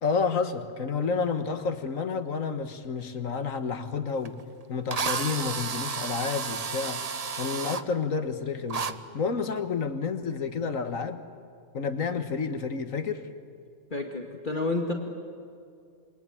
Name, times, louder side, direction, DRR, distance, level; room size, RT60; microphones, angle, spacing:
voice 1, 0.0-4.4 4.7-7.0 7.4-11.2 11.7-13.2, left 5 dB, 60° left, 9 dB, 1.8 m, -30 dB
Drill, 4.3-4.4 4.9-7.8 8.7-8.9, right 5 dB, 35° right, 0.6 m, -31 dB
voice 2, 13.9-14.9, left 2 dB, 35° left, 1 dB, 2.2 m, -29 dB
28.0 x 23.5 x 8.8 m, 2.3 s
omnidirectional pair, 1.6 m